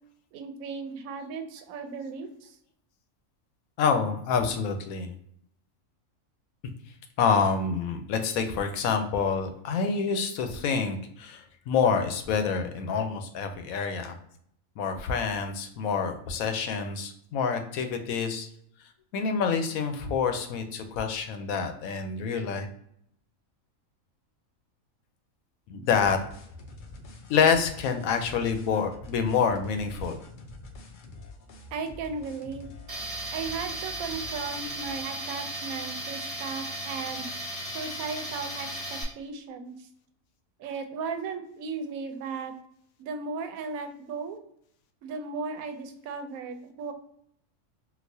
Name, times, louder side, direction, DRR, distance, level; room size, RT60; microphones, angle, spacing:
voice 1, 0.3-2.6 31.7-32.7 33.3-37.3 37.7-39.9 40.6-42.5 43.0-44.4 45.0-46.9, right 5 dB, 85° right, 7 dB, 1.0 m, -36 dB
voice 2, 3.8-5.1 7.2-14.2 14.8-18.5 19.1-22.7 25.7-26.2 27.3-30.2, left 6 dB, 85° left, 6 dB, 1.0 m, -27 dB
sound 1, 25.8-35.0, left 2 dB, 60° left, 0.5 m, -46 dB
Tools, 32.9-39.0, right 1 dB, 30° right, 0.7 m, -36 dB
3.9 x 2.4 x 2.6 m, 0.69 s
omnidirectional pair, 1.4 m